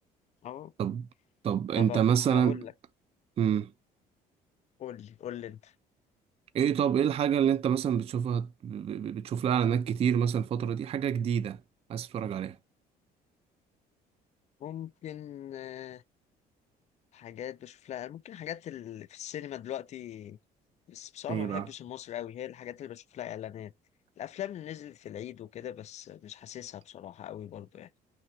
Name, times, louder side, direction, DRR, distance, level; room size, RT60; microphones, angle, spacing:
voice 1, 0.4-0.7 1.8-2.7 4.8-5.7 14.6-16.0 17.1-20.4 20.9-23.7 24.2-27.9, left 11 dB, 40° left, 0.4 m, -40 dB
voice 2, 1.4-2.6 3.4-3.7 6.5-11.6 11.9-12.6 21.3-21.7, right 8 dB, 35° right, 0.4 m, -27 dB
3.3 x 2.8 x 4.2 m
cardioid pair, 110°, 17 cm